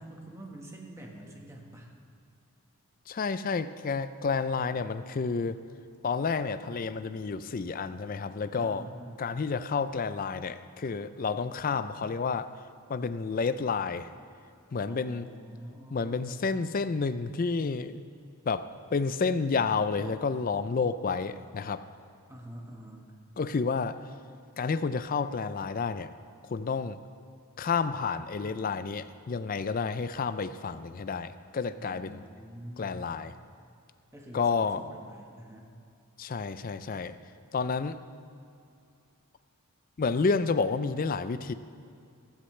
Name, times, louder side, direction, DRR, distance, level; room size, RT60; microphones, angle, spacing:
voice 1, 0.0-1.9 8.6-9.3 14.9-16.4 22.3-23.1 31.8-33.0 34.1-35.7, right 1 dB, 15° right, 0 dB, 1.4 m, -46 dB
voice 2, 3.1-5.6 6.0-8.9 9.2-12.5 12.9-14.1 14.7-15.3 15.9-18.0 18.5-21.8 23.4-23.9 24.6-26.1 26.5-27.0 27.6-32.2 32.8-33.3 34.3-34.8 36.2-37.1 37.5-38.0 40.0-41.5, left 4 dB, 40° left, 12 dB, 0.4 m, -30 dB
15.5 x 13.0 x 3.3 m, 2.5 s
head